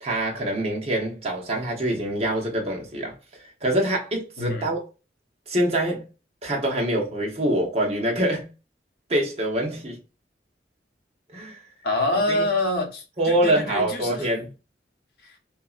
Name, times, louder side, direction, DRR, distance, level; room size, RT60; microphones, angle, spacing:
voice 1, 0.0-4.8 5.5-6.1 6.4-8.5 9.1-10.0 11.3-11.6 12.3-12.5 13.2-14.5, right 1 dB, 35° right, 0.9 m, -25 dB
voice 2, 4.4-4.7 11.8-14.3, left 2 dB, 65° left, 0.8 m, -26 dB
2.8 x 2.7 x 2.4 m
head